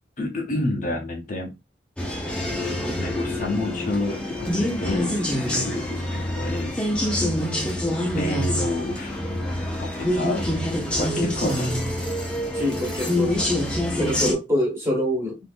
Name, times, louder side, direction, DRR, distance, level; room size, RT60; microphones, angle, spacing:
voice 1, 0.2-1.5 2.5-2.6 3.0-7.3 8.1-9.2 9.8-10.5 11.0-11.8, left 2 dB, 45° left, 0.7 m, -29 dB
sound 1, 2.0-14.3, left 1 dB, 5° left, 0.7 m, -26 dB
voice 2, 12.5-13.5 14.0-15.4, equal, 15° right, 1.3 m, -25 dB
3.6 x 2.6 x 2.5 m
head